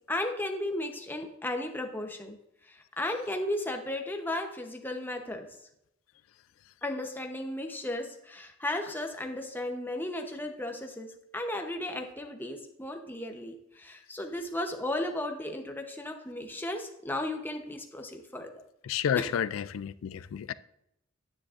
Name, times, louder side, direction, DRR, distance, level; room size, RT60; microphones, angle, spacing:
voice 1, 0.1-2.4 2.7-5.5 6.8-18.5 19.2-19.3, left 1 dB, 10° left, 0.8 m, -35 dB
voice 2, 18.9-20.5, left 8 dB, 75° left, 0.3 m, -30 dB
9.8 x 9.6 x 2.5 m
head